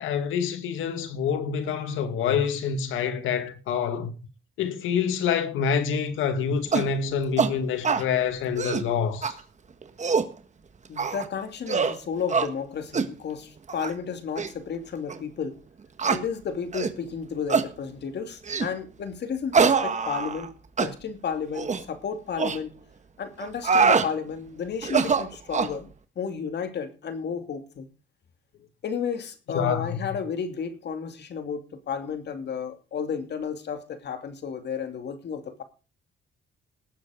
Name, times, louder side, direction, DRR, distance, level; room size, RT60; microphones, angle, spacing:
voice 1, 0.0-4.1 4.6-9.4 29.5-30.1, left 7 dB, 85° left, 2.0 m, -27 dB
sound 1, 6.7-6.9 7.4-7.5 7.8-8.1 8.5-8.9 9.2-9.3 9.8-10.3 11.0-11.3 11.7-12.0 12.3-12.5 12.9-13.1 13.7-13.9 14.4-14.5 15.1-15.2 16.0-16.2 16.7-17.0 17.5-17.7 18.5-18.7 19.5-20.5 20.8-20.9 21.5-21.8 22.4-22.6 23.4-24.1 24.8-25.8, right 5 dB, 35° right, 1.6 m, -24 dB
voice 2, 10.9-15.6 16.1-20.5 20.8-22.7 23.2-25.9 26.2-27.9 28.8-35.6, left 6 dB, 60° left, 2.6 m, -32 dB
19.0 x 7.6 x 5.1 m
cardioid pair, 90°, 20 cm